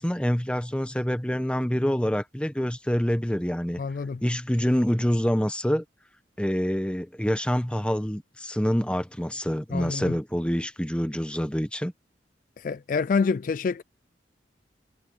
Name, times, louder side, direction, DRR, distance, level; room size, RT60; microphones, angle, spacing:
voice 1, 0.0-3.8 4.2-5.8 6.4-11.9, equal, 5° left, 1.1 m, -26 dB
voice 2, 3.8-4.2 9.7-10.1 12.6-13.8, left 5 dB, 45° left, 0.3 m, -27 dB
head